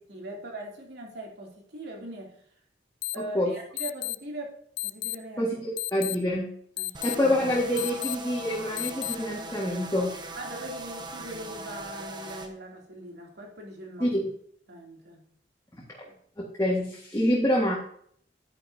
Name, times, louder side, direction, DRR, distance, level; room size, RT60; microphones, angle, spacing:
voice 1, 0.1-2.4 3.1-5.5 6.8-6.9 10.4-14.1 14.7-15.2 16.0-16.2, right 1 dB, 70° right, -1 dB, 2.9 m, -41 dB
sound 1, 3.0-3.2 3.8-4.2 4.8-5.2 5.8-6.2 6.8-7.2 7.8-8.2 8.8-9.2, left 18 dB, 90° left, 0.3 m, -31 dB
voice 2, 5.4-6.5 7.0-10.1 14.0-14.3 16.4-17.8, left 1 dB, 20° left, -4 dB, 1.8 m, -26 dB
sound 2, 6.9-12.5, right 2 dB, 25° right, 0.9 m, -40 dB
10.5 x 9.4 x 2.8 m, 0.62 s
head